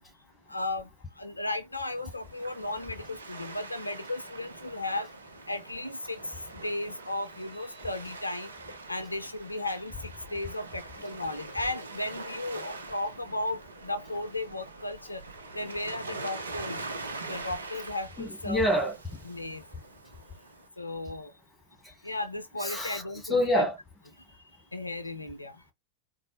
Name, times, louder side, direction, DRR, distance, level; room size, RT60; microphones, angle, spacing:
voice 1, 0.5-0.9 1.2-5.1 5.5-8.5 8.9-15.2 15.5-16.8 17.3-18.6 19.3-19.6 20.8-21.3 22.0-23.2 23.5-23.7 24.7-25.6, left 2 dB, 85° left, 0.5 m, -35 dB
Waves surf, 1.9-20.7, right 3 dB, 75° right, 0.7 m, -43 dB
voice 2, 18.2-19.2 22.6-23.8, equal, 10° left, 1.5 m, -27 dB
4.0 x 2.1 x 3.0 m
figure-of-eight pair, 90°, 0 cm